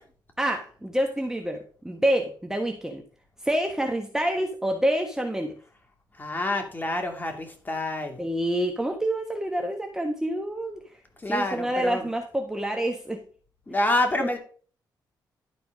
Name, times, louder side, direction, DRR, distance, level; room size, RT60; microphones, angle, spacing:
voice 1, 0.4-3.0 3.4-5.5 8.2-10.8 11.3-13.2 14.2-14.3, right 1 dB, 5° right, 2 dB, 1.3 m, -27 dB
voice 2, 6.2-8.2 11.2-12.1 13.7-14.4, left 1 dB, 25° left, 3 dB, 2.5 m, -27 dB
12.0 x 4.5 x 5.1 m, 0.43 s
cardioid pair, 80°, 8 cm